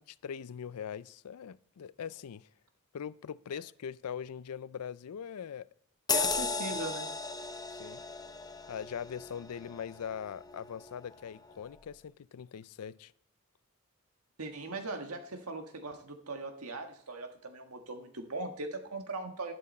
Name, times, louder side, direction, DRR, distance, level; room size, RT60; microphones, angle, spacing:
voice 1, 0.2-2.5 2.9-5.7 6.7-6.8 7.7-8.0 8.7-13.1, left 7 dB, 85° left, 0.4 m, -41 dB
sound 1, 6.1-11.1 11.5-11.7, left 4 dB, 20° left, 0.7 m, -36 dB
voice 2, 6.1-7.1 14.4-19.5, right 2 dB, 80° right, 1.6 m, -39 dB
12.0 x 11.0 x 4.3 m
head